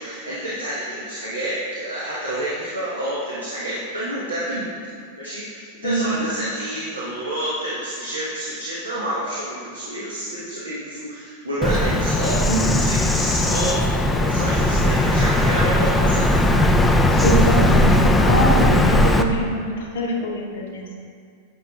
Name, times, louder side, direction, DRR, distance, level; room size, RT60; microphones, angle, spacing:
voice 1, 0.0-4.6 5.2-16.3 17.1-17.3, right 1 dB, 80° right, -8 dB, 1.2 m, -28 dB
voice 2, 5.8-6.3 12.5-12.9 17.2-20.8, equal, 55° left, -1 dB, 0.9 m, -24 dB
Bird vocalization bird call bird song, 11.6-19.2, left 1 dB, 10° left, 0.4 m, -18 dB
8.9 x 6.3 x 2.4 m, 2.2 s
figure-of-eight pair, 90°, 0 cm